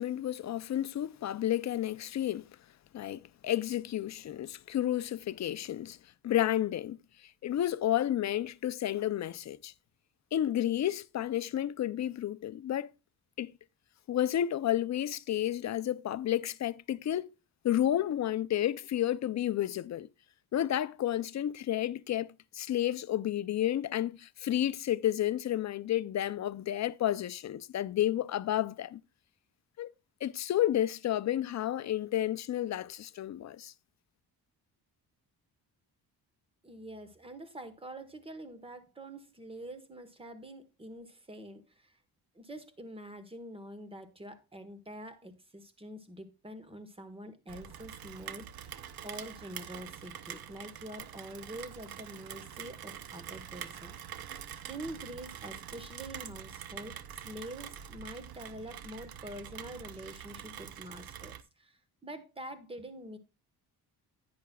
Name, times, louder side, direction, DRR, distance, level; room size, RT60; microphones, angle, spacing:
voice 1, 0.0-2.5 2.9-6.0 6.2-9.7 10.3-12.9 13.4-13.5 14.1-17.3 17.6-20.1 20.5-29.0 29.8-29.9 30.2-33.7, left 12 dB, 45° left, 0.5 m, -31 dB
voice 2, 36.6-41.9 42.3-54.4 54.7-63.2, right 1 dB, 15° right, 1.3 m, -46 dB
Rain, 47.5-61.4, right 9 dB, 65° right, 0.8 m, -45 dB
10.5 x 9.5 x 2.3 m
cardioid pair, 125°, 39 cm